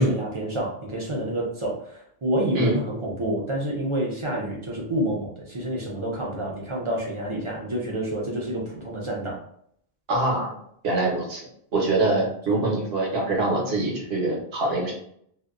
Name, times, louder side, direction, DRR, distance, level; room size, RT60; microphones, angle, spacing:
voice 1, 0.0-9.4 12.5-12.6, right 1 dB, 40° right, -3 dB, 0.5 m, -28 dB
voice 2, 10.1-10.5 10.8-11.4 11.7-14.9, right 2 dB, 75° right, -2 dB, 1.1 m, -24 dB
2.6 x 2.1 x 2.3 m, 0.67 s
omnidirectional pair, 1.1 m